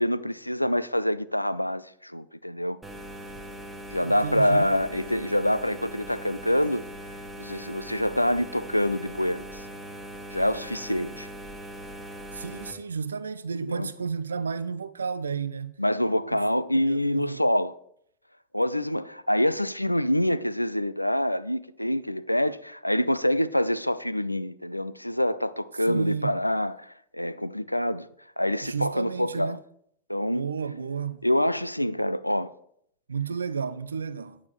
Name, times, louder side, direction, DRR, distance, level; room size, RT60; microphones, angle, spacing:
voice 1, 0.0-2.8 3.9-6.8 7.4-9.6 10.3-11.3 13.5-13.9 15.8-17.7 18.5-28.1 28.4-29.6 30.1-30.5 31.2-32.5, left 1 dB, 90° left, 0.3 m, -26 dB
sound 1, 2.8-12.7, equal, 5° right, 1.3 m, -40 dB
voice 2, 4.0-4.7 12.3-15.8 16.3-16.4 16.8-17.4 25.9-26.4 28.6-29.6 30.3-31.2 33.1-34.4, right 6 dB, 70° right, 0.4 m, -32 dB
9.5 x 8.6 x 3.2 m
figure-of-eight pair, 90°, 0 cm